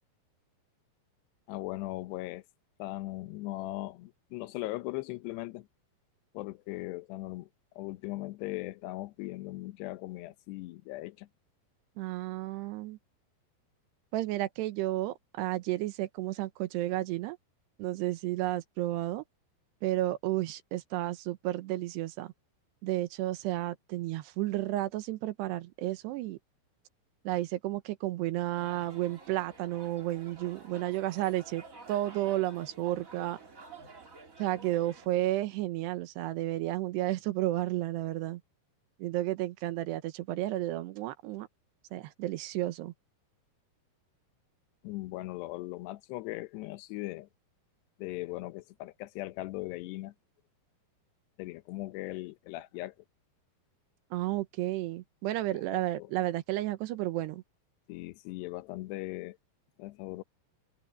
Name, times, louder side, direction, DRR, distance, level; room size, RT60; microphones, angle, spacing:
voice 1, 1.5-2.4 2.8-5.7 6.3-7.5 7.8-11.3 44.8-47.3 48.0-50.1 51.4-52.9 55.7-56.1 57.9-59.4 59.8-60.2, left 18 dB, 80° left, 2.9 m, -39 dB
voice 2, 12.0-13.0 14.1-17.4 17.8-19.2 19.8-22.3 22.8-26.4 27.2-31.6 31.9-33.4 34.4-38.4 39.0-41.5 41.9-42.9 54.1-57.4, right 16 dB, 75° right, 2.9 m, -32 dB
sound 1, 28.6-35.1, right 3 dB, 25° right, 1.9 m, -51 dB
omnidirectional pair, 5.1 m